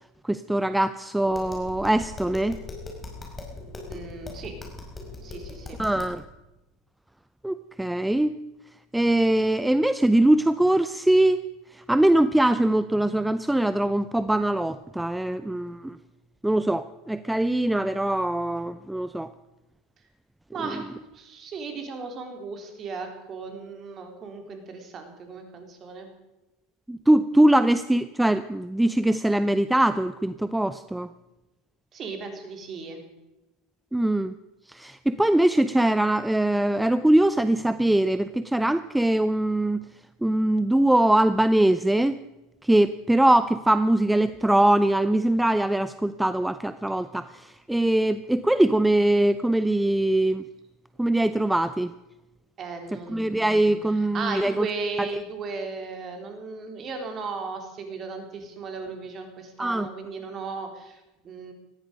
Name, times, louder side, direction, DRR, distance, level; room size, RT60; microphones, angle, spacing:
voice 1, 0.2-2.6 5.8-6.2 7.4-8.4 8.9-11.4 11.7-16.0 16.4-19.3 26.9-31.1 33.9-34.3 34.7-39.8 40.2-42.2 42.6-50.4 51.0-51.9 53.1-54.7 55.0-55.1 59.6-59.9, right 1 dB, 5° right, 13 dB, 0.6 m, -22 dB
Tap, 1.3-6.2, left 3 dB, 20° left, 5.2 m, -40 dB
voice 2, 3.9-4.5 5.2-5.8 20.5-26.1 31.9-33.0 52.6-61.5, right 4 dB, 40° right, 4 dB, 3.9 m, -36 dB
18.5 x 14.5 x 5.2 m, 1.0 s
hypercardioid pair, 85°, 0 cm